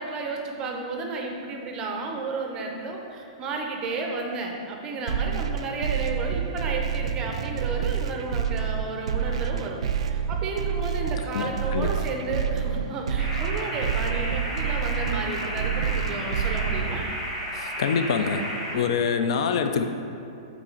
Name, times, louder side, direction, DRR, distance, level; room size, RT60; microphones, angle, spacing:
voice 1, 0.0-9.8 10.1-17.1, right 3 dB, 20° right, 1 dB, 0.5 m, -32 dB
sound 1, 5.1-17.1, right 7 dB, 80° right, 0.3 m, -28 dB
voice 2, 11.3-11.9 17.5-18.4 18.7-19.9, left 6 dB, 60° left, 7 dB, 0.4 m, -25 dB
sound 2, 13.2-18.7, equal, 5° left, 1.4 m, -33 dB
6.1 x 4.1 x 4.4 m, 2.5 s
hypercardioid pair, 165°, 3 cm